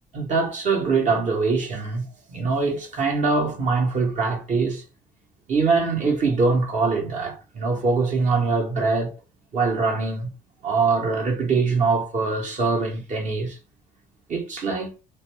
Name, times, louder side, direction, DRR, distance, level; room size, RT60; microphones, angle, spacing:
voice 1, 0.1-4.8 5.5-9.1 9.5-10.3 10.6-13.6 14.3-14.9, right 4 dB, 45° right, 1.0 m, -23 dB
2.5 x 2.2 x 3.1 m
cardioid pair, 110°, 17 cm